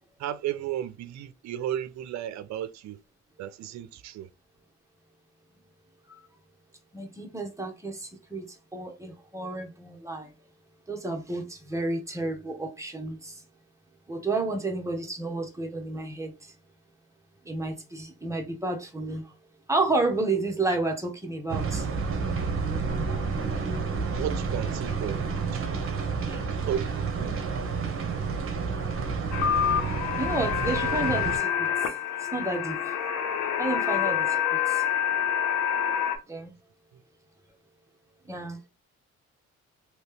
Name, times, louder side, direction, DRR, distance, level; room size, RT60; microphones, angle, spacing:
voice 1, 0.2-3.0 3.4-4.3 24.2-25.2 25.5-25.7 26.4-27.4, right 11 dB, 65° right, 0.5 m, -34 dB
voice 2, 6.9-10.3 10.9-13.4 14.1-16.5 17.4-19.3 19.7-21.9 25.7-25.9 26.2-26.4 30.2-31.7 32.2-32.9 33.6-34.8 36.3-36.5 38.3-38.6, right 2 dB, 10° right, 1.1 m, -31 dB
sound 1, 21.5-31.4, right 5 dB, 45° right, 0.9 m, -30 dB
sound 2, 29.3-36.2, left 9 dB, 85° left, 0.9 m, -27 dB
3.1 x 2.9 x 3.2 m
cardioid pair, 90°, 30 cm